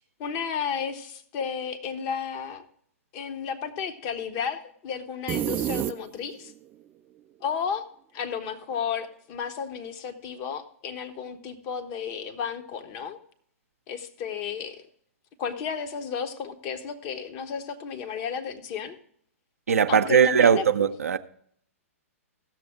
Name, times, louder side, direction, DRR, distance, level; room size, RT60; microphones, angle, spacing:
voice 1, 0.2-2.7 3.1-6.5 7.4-7.9 8.1-13.2 13.9-14.8 15.4-19.0 19.9-20.7, left 7 dB, 35° left, 1.1 m, -33 dB
sound 1, 5.3-6.5, right 11 dB, 20° right, 0.3 m, -29 dB
voice 2, 19.7-21.2, right 7 dB, 75° right, 0.5 m, -20 dB
16.0 x 6.9 x 3.7 m
figure-of-eight pair, 115°, 8 cm